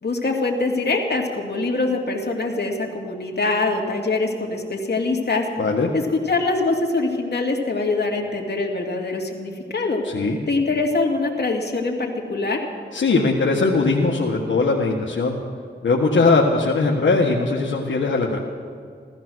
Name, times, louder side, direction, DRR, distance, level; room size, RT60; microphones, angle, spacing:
voice 1, 0.0-5.5 5.9-10.0 10.5-12.6, left 3 dB, 60° left, 0 dB, 2.5 m, -23 dB
voice 2, 5.6-5.9 10.0-10.4 12.9-15.4 15.8-18.4, left 3 dB, 90° left, -2 dB, 1.5 m, -20 dB
16.0 x 14.0 x 6.3 m, 2.2 s
wide cardioid pair, 75°, 19 cm